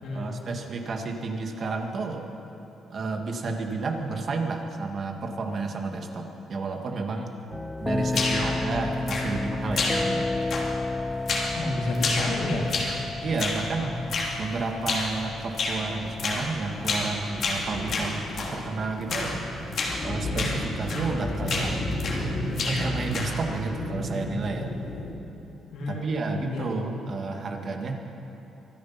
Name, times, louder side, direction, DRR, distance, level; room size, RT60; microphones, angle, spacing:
voice 1, 0.1-2.3 2.9-7.3 7.8-10.3 13.2-14.0 14.4-19.4 20.0-21.8 22.6-24.7 25.9-28.0, right 3 dB, 50° right, 3 dB, 1.8 m, -31 dB
sound 1, 7.5-24.0, left 2 dB, 10° left, 0.5 m, -34 dB
sound 2, 8.1-8.6 9.1-9.5 9.8-10.2 10.5-10.9 11.3-11.6 11.9-13.0 13.4-13.7 14.1-14.4 14.9-15.1 15.6-15.8 16.2-16.5 16.8-17.1 17.4-18.6 19.1-19.4 19.7-20.0 20.4-20.6 20.9-21.2 21.5-22.3 22.6-23.4, left 3 dB, 60° left, 2.8 m, -29 dB
voice 2, 11.5-12.7 13.8-13.9 25.7-26.7, left 1 dB, 75° left, -2 dB, 3.2 m, -30 dB
sound 3, 15.7-25.1, left 1 dB, 40° left, 3.9 m, -33 dB
24.5 x 9.8 x 5.8 m, 2.9 s
cardioid pair, 90°, 0 cm